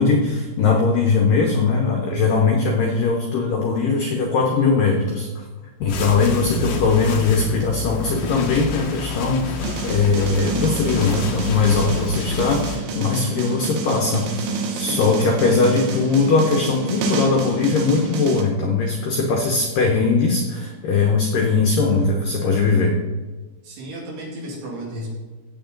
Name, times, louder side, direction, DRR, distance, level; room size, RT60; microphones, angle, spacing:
voice 1, 0.0-5.4 5.8-9.5 9.8-14.4 14.8-23.0, left 4 dB, 80° left, 1 dB, 1.9 m, -20 dB
sound 1, 5.9-12.8, left 3 dB, 65° left, 2.8 m, -29 dB
sound 2, 9.6-18.4, right 3 dB, 80° right, 3.7 m, -29 dB
voice 2, 14.7-15.2 15.5-15.8 23.6-25.1, right 1 dB, 60° right, -3 dB, 4.3 m, -33 dB
16.0 x 7.8 x 3.9 m, 1.3 s
omnidirectional pair, 5.5 m